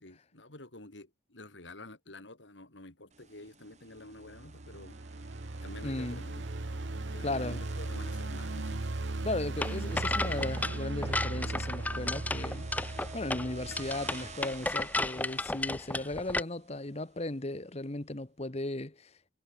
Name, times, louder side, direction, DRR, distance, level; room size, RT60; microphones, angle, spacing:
voice 1, 0.0-5.0 5.6-6.5 7.1-8.8, left 2 dB, 85° left, 3.6 m, -49 dB
sound 1, 3.1-17.3, right 4 dB, 40° right, 5.8 m, -52 dB
sound 2, 4.2-14.3, right 2 dB, 85° right, 1.1 m, -37 dB
voice 2, 5.8-6.2 7.2-7.6 9.2-19.1, left 2 dB, 35° left, 1.2 m, -36 dB
sound 3, 9.6-16.4, left 2 dB, 10° left, 0.4 m, -34 dB
head